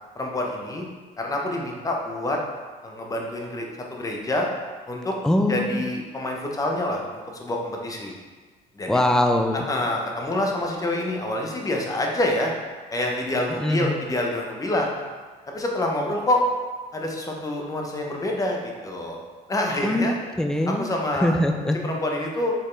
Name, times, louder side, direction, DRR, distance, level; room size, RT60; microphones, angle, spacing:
voice 1, 0.2-0.9 1.2-2.4 2.8-3.7 3.9-4.5 4.9-5.1 5.5-8.1 8.8-8.9 9.5-12.5 12.9-15.0 15.5-16.4 16.9-19.2 19.5-20.1 20.7-21.4 21.8-22.5, left 1 dB, 20° left, 0 dB, 0.7 m, -27 dB
voice 2, 5.2-5.8 8.9-9.7 13.6-13.9 19.8-20.9 21.2-21.8, left 1 dB, 5° left, 4 dB, 0.3 m, -22 dB
4.5 x 3.5 x 3.2 m, 1.4 s
cardioid pair, 110°, 17 cm